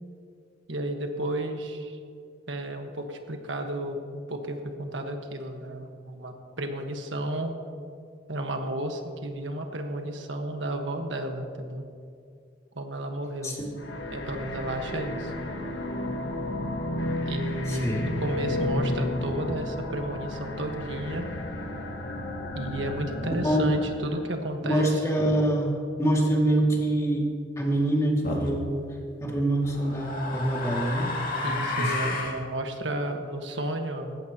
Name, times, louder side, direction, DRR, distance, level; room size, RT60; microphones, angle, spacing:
voice 1, 0.7-2.0 2.5-7.5 8.3-11.8 12.7-13.6 14.1-15.3 17.3-21.3 22.5-25.0 31.4-34.2, right 1 dB, 85° right, 4 dB, 1.4 m, -33 dB
sound 1, 13.8-24.3, left 1 dB, 75° left, 1.5 m, -32 dB
voice 2, 17.7-18.1 23.4-23.6 24.6-27.3 27.6-28.8 29.2-31.1 31.4-32.2, right 1 dB, 15° left, -2 dB, 2.3 m, -25 dB
sound 2, 28.2-28.6 29.6-32.4, left 2 dB, 50° left, 2.2 m, -31 dB
19.0 x 16.0 x 2.9 m, 2.3 s
head